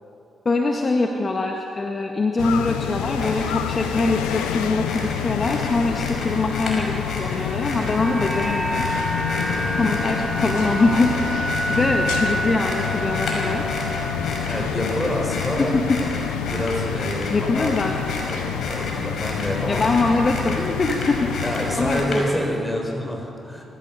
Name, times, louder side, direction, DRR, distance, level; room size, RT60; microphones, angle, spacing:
voice 1, 0.5-8.9 9.7-13.6 15.6-16.0 16.3-16.4 17.3-17.9 19.7-21.3 21.8-22.4, left 3 dB, 45° left, 2 dB, 1.7 m, -23 dB
sound 1, 2.4-22.1, left 9 dB, 85° left, 0.7 m, -28 dB
sound 2, 3.1-22.5, left 2 dB, 65° left, 5.7 m, -33 dB
sound 3, 7.0-15.3 15.6-15.7, right 1 dB, 5° right, 2.0 m, -29 dB
voice 2, 9.3-9.9 14.4-15.7 16.4-17.7 18.3-19.9 21.4-23.6, equal, 10° left, 0 dB, 6.8 m, -27 dB
25.0 x 15.5 x 6.8 m, 2.7 s
hypercardioid pair, 45°, 0 cm